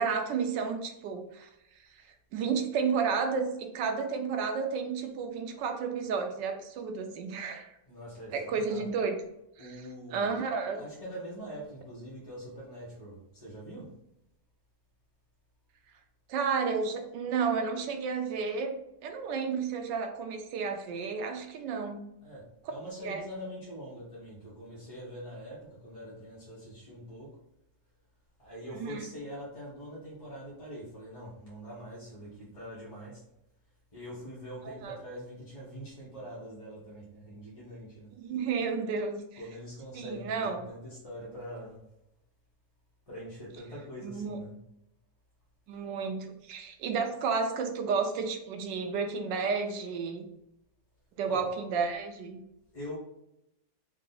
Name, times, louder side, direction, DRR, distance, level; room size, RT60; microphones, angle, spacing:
voice 1, 0.0-1.5 2.3-7.7 8.3-9.2 10.1-10.8 16.3-18.7 19.0-22.0 23.0-23.2 28.7-29.0 34.6-35.0 38.2-39.2 39.9-40.7 44.0-44.5 45.7-50.3 51.2-52.4, right 5 dB, 80° right, 5 dB, 1.3 m, -32 dB
voice 2, 7.8-8.9 9.6-10.4 10.7-13.9 22.2-27.4 28.4-33.2 33.9-38.2 39.4-41.8 43.1-44.6 51.3-51.5 52.7-53.0, equal, 25° left, -7 dB, 0.9 m, -44 dB
3.6 x 2.8 x 3.9 m, 0.82 s
omnidirectional pair, 1.9 m